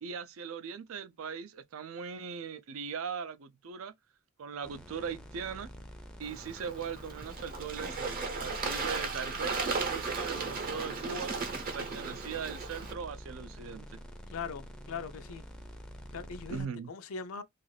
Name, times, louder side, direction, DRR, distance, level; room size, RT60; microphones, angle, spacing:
voice 1, 0.0-3.9 4.4-5.7 6.2-11.3 11.7-14.0 16.5-16.9, right 6 dB, 75° right, 0.4 m, -39 dB
sound 1, 4.6-16.6, equal, 5° left, 0.4 m, -47 dB
Bird / Water, 6.2-12.9, right 4 dB, 45° right, 0.7 m, -36 dB
voice 2, 14.3-15.4 16.1-17.4, left 5 dB, 90° left, 0.5 m, -41 dB
2.5 x 2.3 x 3.1 m
head